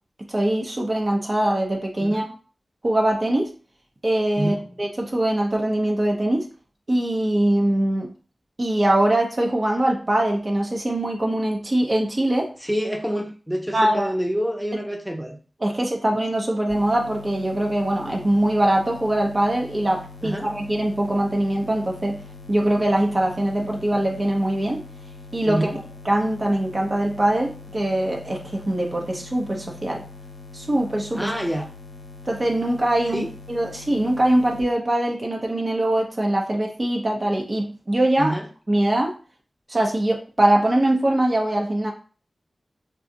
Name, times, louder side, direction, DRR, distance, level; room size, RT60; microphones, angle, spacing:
voice 1, 0.3-2.3 2.8-3.5 4.0-6.5 6.9-8.1 8.6-12.5 13.7-14.1 15.6-22.2 22.5-24.8 25.3-25.7 26.1-30.0 30.5-31.3 32.3-38.3 38.7-39.1 39.7-41.9, right 1 dB, 45° right, 0 dB, 0.7 m, -22 dB
voice 2, 2.0-2.3 4.4-4.8 12.6-15.4 20.2-20.5 25.4-25.8 31.1-31.7 33.1-33.3 38.2-38.5, equal, 5° right, 1 dB, 0.7 m, -27 dB
sound 1, 16.7-34.6, left 3 dB, 60° left, 0.5 m, -42 dB
2.5 x 2.3 x 3.9 m, 0.38 s
cardioid pair, 45°, 0 cm